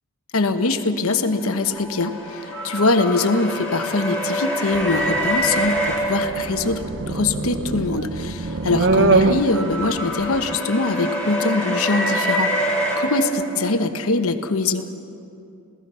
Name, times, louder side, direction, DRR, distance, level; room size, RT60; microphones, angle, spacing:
voice 1, 0.3-14.9, left 3 dB, 75° left, 8 dB, 1.1 m, -23 dB
sound 1, 1.4-7.0 8.4-13.7, equal, 5° left, 2.8 m, -26 dB
sound 2, 4.7-10.6, right 3 dB, 55° right, 0.6 m, -24 dB
27.5 x 17.0 x 5.6 m, 2.6 s
head